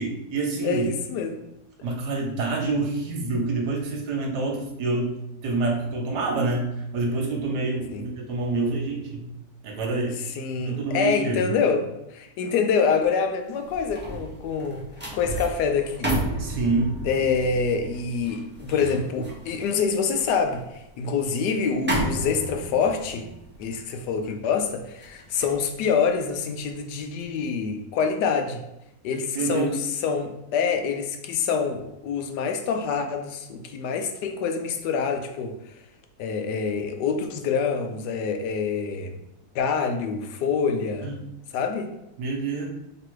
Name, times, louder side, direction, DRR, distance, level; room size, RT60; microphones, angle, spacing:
voice 1, 0.0-0.9 1.8-5.1 5.4-9.3 9.6-10.1 10.6-11.5 16.4-17.0 29.3-29.8 41.0-41.2 42.2-42.7, right 3 dB, 75° right, 0 dB, 1.4 m, -27 dB
voice 2, 0.6-1.4 7.9-8.0 10.3-14.9 15.1-16.1 17.0-23.3 23.6-28.6 29.0-29.7 30.0-35.7 36.2-39.1 39.5-41.1 41.5-41.9, left 5 dB, 80° left, 5 dB, 1.2 m, -26 dB
sound 1, 13.5-26.8 27.2-27.5, right 1 dB, 15° right, 0.3 m, -33 dB
3.2 x 3.0 x 4.5 m, 0.87 s
omnidirectional pair, 1.8 m